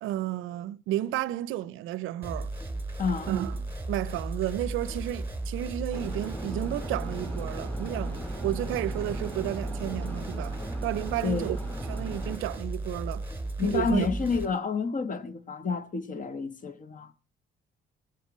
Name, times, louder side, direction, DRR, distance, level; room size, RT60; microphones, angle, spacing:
voice 1, 0.0-2.5 3.3-10.6 10.8-11.6 11.9-13.3 13.6-14.1, right 13 dB, 90° right, 0.5 m, -32 dB
sound 1, 2.2-14.5, right 2 dB, 10° right, 2.3 m, -35 dB
voice 2, 3.0-3.4 11.2-11.5 13.6-17.1, left 5 dB, 40° left, 1.1 m, -29 dB
sound 2, 5.9-12.4, right 1 dB, 10° left, 3.9 m, -40 dB
19.5 x 7.4 x 5.0 m
cardioid pair, 90°, 20 cm